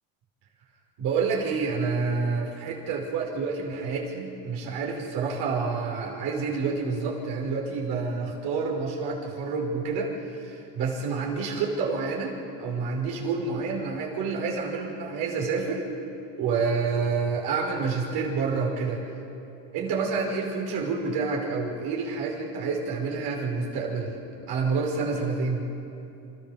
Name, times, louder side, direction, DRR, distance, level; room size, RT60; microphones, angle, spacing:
voice 1, 1.0-10.1 10.4-15.9 16.4-19.0 19.7-24.2 24.5-25.7, right 4 dB, 65° right, -1 dB, 5.3 m, -28 dB
27.0 x 15.0 x 7.1 m, 2.8 s
supercardioid pair, 90°, 41 cm